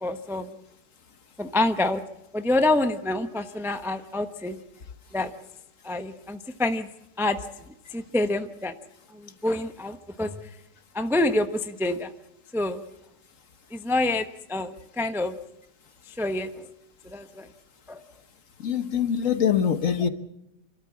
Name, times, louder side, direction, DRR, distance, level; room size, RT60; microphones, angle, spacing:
voice 1, 0.0-0.6 1.4-2.0 2.3-4.6 5.1-5.3 5.8-6.9 7.2-7.4 7.9-8.7 9.1-10.4 10.9-12.1 12.5-12.8 13.7-15.3 16.1-16.7 17.1-17.5 17.9-18.0, left 2 dB, ahead, 8 dB, 0.6 m, -27 dB
voice 2, 18.6-20.1, left 8 dB, 50° left, 10 dB, 1.4 m, -23 dB
27.5 x 13.0 x 8.5 m, 0.84 s
omnidirectional pair, 1.9 m